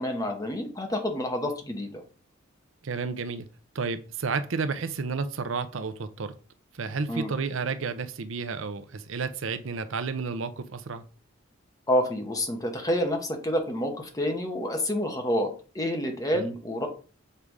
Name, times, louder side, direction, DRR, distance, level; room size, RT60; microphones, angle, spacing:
voice 1, 0.0-2.0 7.1-7.3 11.9-16.9, equal, 20° left, 1.3 m, -28 dB
voice 2, 2.8-3.5 3.7-6.3 6.7-11.0 16.3-16.5, right 4 dB, 70° right, 0.6 m, -31 dB
6.8 x 3.6 x 4.7 m
head